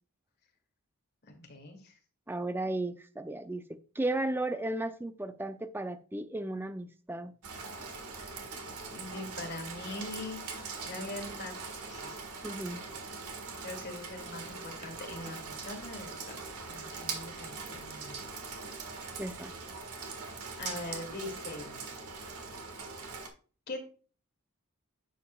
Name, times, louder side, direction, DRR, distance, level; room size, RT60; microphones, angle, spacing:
voice 1, 1.2-2.0 8.9-10.5 10.8-11.6 11.9-12.2 13.6-16.4 16.7-18.4 20.6-22.0 23.7-23.8, left 2 dB, 45° left, 2.4 m, -42 dB
voice 2, 2.3-7.3 12.4-12.8 19.2-19.5, right 2 dB, 10° right, 0.4 m, -35 dB
Rain, 7.4-23.3, right 4 dB, 85° right, 1.6 m, -42 dB
10.5 x 7.3 x 2.3 m
head